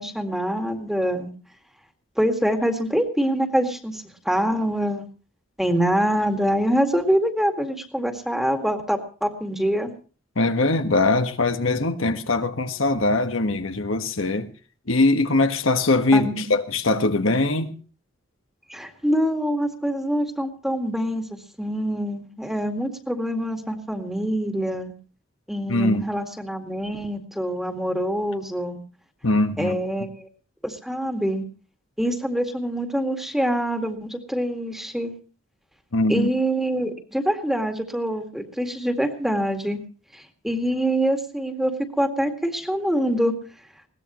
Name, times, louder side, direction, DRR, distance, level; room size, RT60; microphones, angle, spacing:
voice 1, 0.0-1.3 2.2-5.1 5.6-9.9 16.1-16.5 18.7-21.3 21.6-24.9 25.5-28.8 29.6-30.3 30.6-31.5 32.0-35.1 36.1-39.8 40.1-43.3, equal, ahead, 2.0 m, -25 dB
voice 2, 10.3-14.5 14.9-17.8 25.7-26.1 29.2-29.8 35.9-36.3, left 2 dB, 90° left, 1.5 m, -21 dB
21.5 x 18.0 x 3.1 m
head